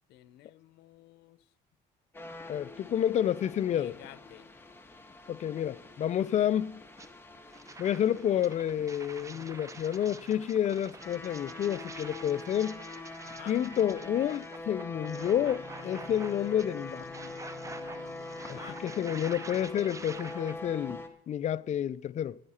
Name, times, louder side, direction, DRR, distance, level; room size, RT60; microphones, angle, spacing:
voice 1, 0.1-1.4 3.7-4.5 13.2-13.7 18.4-18.8, left 15 dB, 85° left, 0.6 m, -51 dB
sound 1, 2.1-21.1, left 2 dB, 15° left, 1.5 m, -44 dB
voice 2, 2.5-4.0 5.3-6.8 7.8-12.8 13.4-17.1 18.5-22.4, left 10 dB, 45° left, 0.4 m, -30 dB
sound 2, 7.0-7.1 7.5-20.5, right 3 dB, 20° right, 0.9 m, -47 dB
15.0 x 11.0 x 4.2 m
cardioid pair, 110°, 17 cm